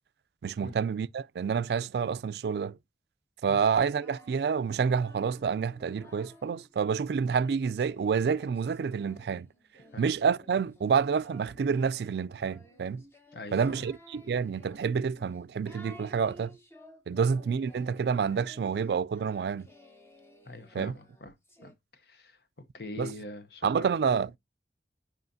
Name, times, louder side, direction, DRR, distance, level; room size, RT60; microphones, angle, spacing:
voice 1, 0.4-2.8 3.4-9.5 10.0-13.0 13.5-16.6 17.1-19.7 20.7-20.9 23.0-23.1 23.6-24.3, right 6 dB, 65° right, 0.3 m, -28 dB
Singing, 3.7-6.7 7.3-21.7, equal, 15° left, 1.0 m, -55 dB
voice 2, 13.3-13.9 17.1-17.2 20.5-21.3 21.6-22.4 22.7-24.0, left 2 dB, 60° left, 0.8 m, -43 dB
7.8 x 5.0 x 2.6 m
head